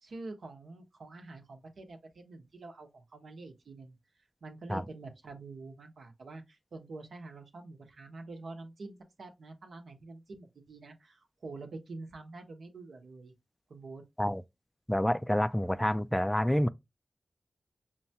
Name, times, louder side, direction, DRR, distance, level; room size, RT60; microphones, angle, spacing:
voice 1, 0.0-4.0 4.4-13.3 13.7-14.0, right 3 dB, 85° right, 0.9 m, -46 dB
voice 2, 14.9-16.7, equal, 10° left, 0.3 m, -28 dB
5.6 x 2.2 x 2.8 m
cardioid pair, 40°, 0 cm